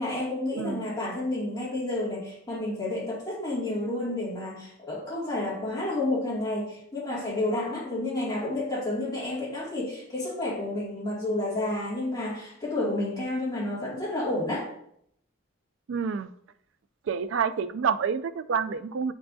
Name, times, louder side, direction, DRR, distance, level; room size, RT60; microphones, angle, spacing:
voice 1, 0.0-14.7, left 1 dB, 20° left, 2.3 m, -30 dB
voice 2, 0.6-0.9 15.9-16.3 17.1-19.1, right 6 dB, 65° right, 0.3 m, -28 dB
8.3 x 4.5 x 2.7 m
head